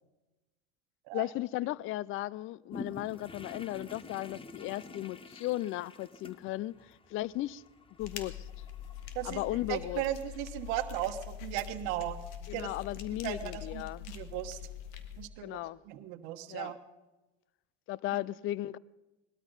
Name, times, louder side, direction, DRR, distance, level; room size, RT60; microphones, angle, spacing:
voice 1, 1.1-7.6 8.0-8.5 9.2-10.0 12.5-14.1 15.4-15.8 16.5-16.7 17.9-18.8, left 16 dB, 40° left, 0.4 m, -36 dB
sound 1, 2.7-10.7, left 3 dB, 15° left, 0.9 m, -49 dB
sound 2, 8.0-15.3, left 10 dB, 70° left, 1.7 m, -44 dB
voice 2, 9.1-12.2 12.5-12.7 13.2-14.6 15.2-15.6 15.9-16.7, right 13 dB, 70° right, 1.3 m, -36 dB
19.5 x 12.5 x 5.4 m
supercardioid pair, 110°, 32 cm